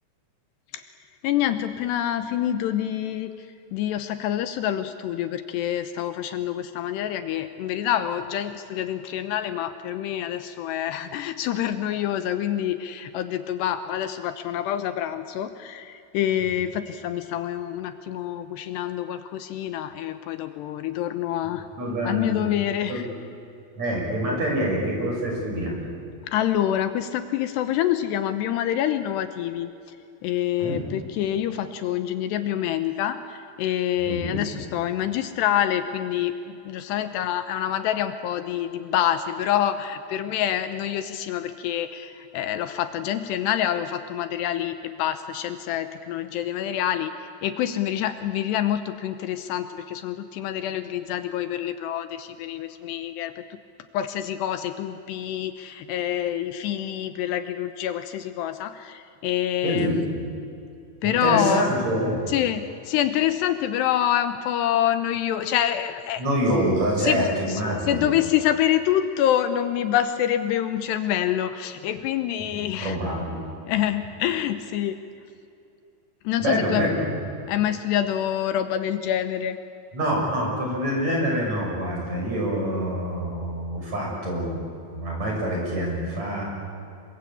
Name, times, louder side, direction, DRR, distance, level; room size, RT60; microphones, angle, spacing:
voice 1, 1.2-3.3 3.7-21.6 22.1-23.0 26.3-29.7 30.2-53.4 53.9-59.9 61.0-61.7 62.3-66.2 67.0-67.6 67.9-73.0 73.7-75.0 76.2-76.9 77.5-79.6, left 11 dB, 75° left, 10 dB, 2.9 m, -26 dB
voice 2, 21.8-22.4 22.9-23.1 23.8-25.9 30.6-30.9 34.0-34.4 59.6-60.3 61.0-62.3 66.2-68.1 72.4-73.4 76.4-77.1 79.9-84.6 84.9-86.4, equal, 40° right, -1 dB, 7.5 m, -26 dB
27.0 x 24.0 x 8.5 m, 2.6 s
omnidirectional pair, 5.2 m